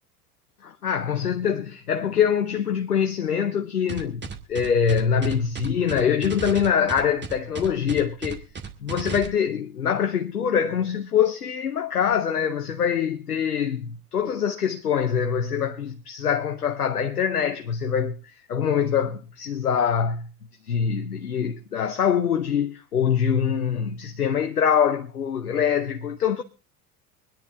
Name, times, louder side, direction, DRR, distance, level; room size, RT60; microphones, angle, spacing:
voice 1, 0.6-4.2 4.5-8.4 8.8-20.3 20.6-26.4, left 7 dB, 90° left, 0.9 m, -24 dB
sound 1, 3.9-9.3, right 5 dB, 25° right, 2.0 m, -34 dB
24.0 x 10.5 x 3.4 m
figure-of-eight pair, 75°, 45 cm